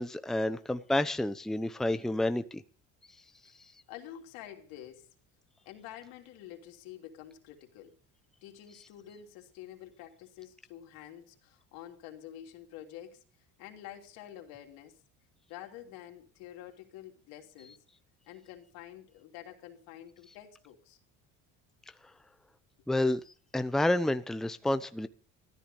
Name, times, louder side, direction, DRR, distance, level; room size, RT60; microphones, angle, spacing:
voice 1, 0.0-2.6 22.9-23.2 23.5-25.1, left 1 dB, ahead, 11 dB, 0.8 m, -29 dB
voice 2, 3.9-5.1 5.6-7.9 8.4-13.2 13.6-15.0 15.5-17.8 18.3-21.0, left 11 dB, 75° left, 3 dB, 3.2 m, -48 dB
15.0 x 13.5 x 5.4 m, 0.42 s
supercardioid pair, 100°, 35 cm